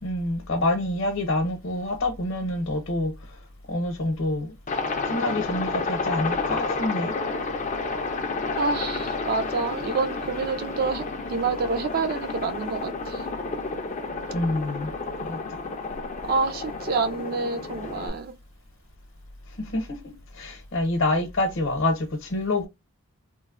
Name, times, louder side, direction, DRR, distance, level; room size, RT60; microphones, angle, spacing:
voice 1, 0.0-3.1 3.7-4.5 5.1-7.2 14.3-14.9 15.2-15.4 19.6-22.7, left 1 dB, 55° left, 0.8 m, -27 dB
Aircraft, 4.7-18.1, left 3 dB, 30° left, 0.4 m, -31 dB
voice 2, 8.6-11.0 11.3-13.2 16.3-18.3, right 4 dB, 40° right, 0.3 m, -27 dB
3.1 x 2.1 x 2.4 m
head